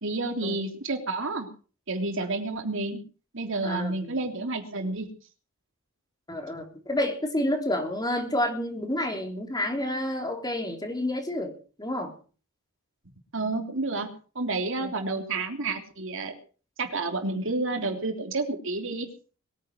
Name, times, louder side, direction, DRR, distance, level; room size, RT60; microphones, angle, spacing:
voice 1, 0.0-1.5 1.9-3.0 3.3-5.1 13.3-14.1 14.3-16.3 16.8-19.1, right 3 dB, 65° right, 4 dB, 3.3 m, -30 dB
voice 2, 3.6-4.2 6.3-12.1 14.8-14.9, left 1 dB, 20° left, 4 dB, 3.6 m, -29 dB
22.0 x 10.0 x 6.2 m, 0.39 s
head